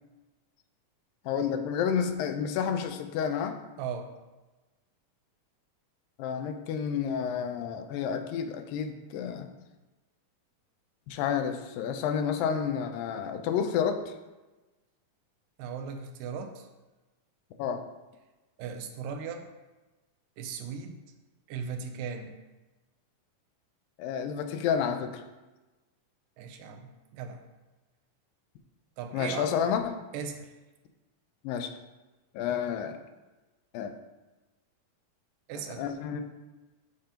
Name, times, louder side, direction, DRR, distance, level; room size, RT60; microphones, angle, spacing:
voice 1, 1.3-3.6 6.2-9.5 11.1-14.1 17.6-17.8 24.0-25.2 29.1-29.9 31.4-31.7 32.3-33.0 33.7-33.9 35.8-36.2, left 7 dB, 90° left, 6 dB, 2.4 m, -30 dB
voice 2, 3.8-4.2 15.6-16.7 18.6-19.5 20.4-21.0 21.5-22.4 26.4-27.4 29.0-29.5 30.1-30.5 35.5-35.9, right 6 dB, 80° right, 5 dB, 2.3 m, -38 dB
11.0 x 5.1 x 2.9 m, 1.1 s
omnidirectional pair, 3.9 m